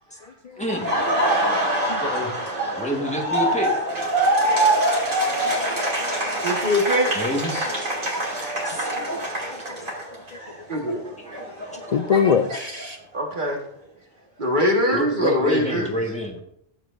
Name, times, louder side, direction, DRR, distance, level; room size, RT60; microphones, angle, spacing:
voice 1, 0.1-0.9 2.0-2.3 2.7-3.7 5.5-5.6 7.1-7.7 8.6-9.3 10.3-10.5 11.2-11.4 14.9-16.4, equal, 5° left, -1 dB, 1.4 m, -29 dB
Laughter, 0.7-10.5 10.8-12.9, right 1 dB, 85° right, 3.1 m, -24 dB
voice 2, 5.3-6.2 9.0-9.1 9.4-10.2 10.6-10.7 11.9-13.0, left 7 dB, 60° left, 8 dB, 0.4 m, -26 dB
voice 3, 6.4-7.1 8.1-9.6 10.7-11.1 11.5-11.6 12.1-12.3 13.1-13.6 14.4-15.9, left 1 dB, 45° right, -1 dB, 1.8 m, -24 dB
15.0 x 7.8 x 2.6 m, 0.72 s
omnidirectional pair, 1.2 m